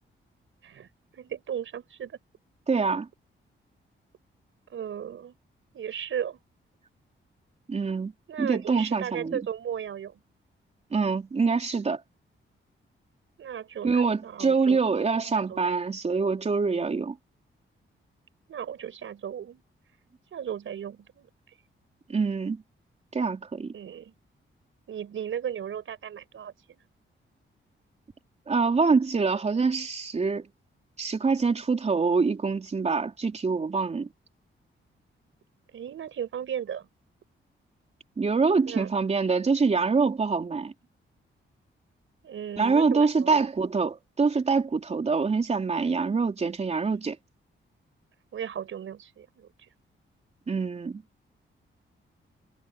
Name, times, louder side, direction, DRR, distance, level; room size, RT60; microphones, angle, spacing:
voice 1, 1.1-2.2 4.7-5.3 5.7-6.4 8.3-10.2 13.4-14.8 15.3-15.8 18.5-19.6 20.3-21.3 23.7-24.1 24.9-26.8 35.7-36.9 38.7-38.9 42.2-43.5 48.3-49.5, right 9 dB, 75° right, 5.7 m, -36 dB
voice 2, 2.7-3.1 7.7-8.1 8.4-9.4 10.9-12.0 13.8-17.2 22.1-22.6 23.1-23.7 28.5-30.5 31.0-34.1 38.2-40.7 42.6-47.2 50.5-51.0, right 4 dB, 30° right, 3.9 m, -25 dB
wide cardioid pair, 155°, 21 cm